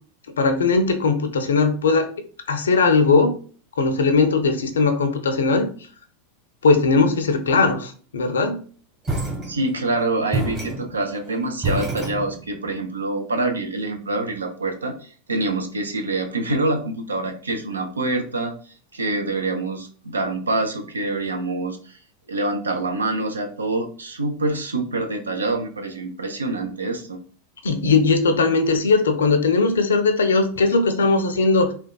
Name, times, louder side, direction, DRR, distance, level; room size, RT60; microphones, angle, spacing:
voice 1, 0.4-2.1 2.5-3.3 3.8-5.7 6.6-8.6 27.6-31.7, left 4 dB, 70° left, 8 dB, 0.4 m, -19 dB
sound 1, 9.0-9.9 10.3-12.7, right 2 dB, 30° right, 1.3 m, -28 dB
voice 2, 9.5-22.0 22.3-27.2, right 2 dB, 80° right, 5 dB, 0.5 m, -26 dB
3.5 x 2.2 x 2.2 m, 0.42 s
figure-of-eight pair, 90°, 0 cm